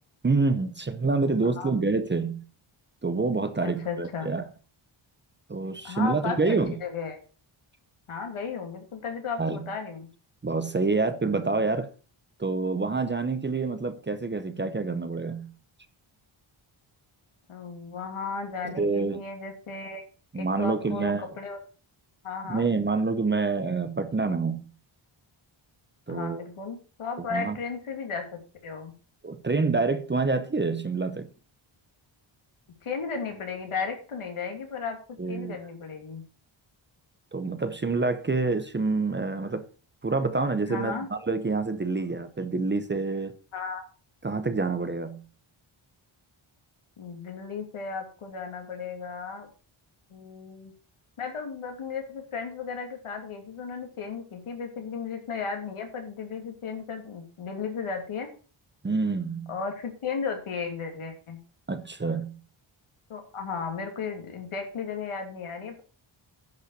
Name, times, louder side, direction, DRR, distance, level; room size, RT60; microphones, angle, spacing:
voice 1, 0.2-2.4 3.0-4.4 5.5-6.8 9.4-9.6 10.4-11.9 12.4-15.5 18.6-19.2 20.3-21.2 22.4-24.7 26.1-26.4 27.2-27.6 29.2-31.3 35.2-35.6 37.3-39.7 40.0-43.3 44.2-45.2 58.8-59.5 61.7-62.4, right 3 dB, 20° right, 0.7 m, -27 dB
voice 2, 3.6-4.3 5.8-7.2 8.1-10.1 17.5-20.0 20.3-21.6 22.2-22.6 26.1-28.9 32.8-35.0 35.3-36.2 40.7-41.1 43.5-43.8 47.0-49.5 50.1-50.7 51.2-58.3 59.5-61.4 63.1-65.8, left 5 dB, 80° left, 3.0 m, -35 dB
10.5 x 5.7 x 6.5 m
wide cardioid pair, 165°, 50 cm